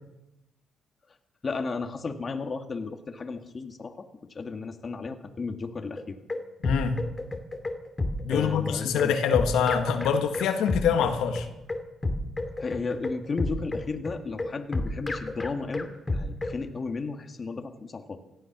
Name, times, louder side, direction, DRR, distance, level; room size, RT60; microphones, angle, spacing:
voice 1, 1.4-6.2 8.3-9.1 12.6-18.2, left 4 dB, 35° left, 6 dB, 1.8 m, -34 dB
sound 1, 6.0-16.6, left 2 dB, 20° left, 2.4 m, -31 dB
voice 2, 6.6-7.0 8.2-11.5, left 7 dB, 85° left, 6 dB, 1.7 m, -25 dB
17.5 x 13.5 x 6.1 m, 0.93 s
cardioid pair, 90°, 0 cm